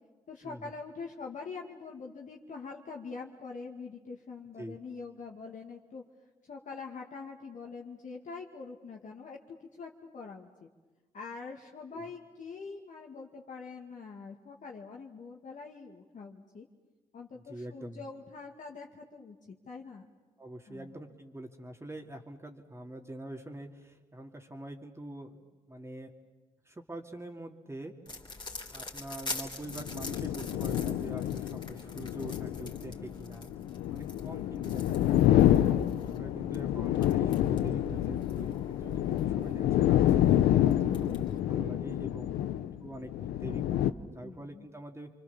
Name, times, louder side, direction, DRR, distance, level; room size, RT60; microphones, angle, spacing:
voice 1, 0.3-6.0 6.4-10.7 11.1-16.7 17.1-20.1 20.7-20.9 32.9-33.7 42.4-43.0 44.2-44.7, left 4 dB, 55° left, -1 dB, 2.3 m, -44 dB
voice 2, 17.3-18.0 20.4-26.1 26.6-27.9 28.7-33.5 33.9-35.5 36.1-42.4 42.8-45.1, right 1 dB, 15° right, 1 dB, 2.8 m, -44 dB
sound 1, 28.1-41.4, left 2 dB, 30° left, 3.7 m, -45 dB
sound 2, 29.7-43.9, left 12 dB, 80° left, 0.8 m, -28 dB
28.5 x 24.5 x 7.3 m, 1.3 s
supercardioid pair, 50°, 15 cm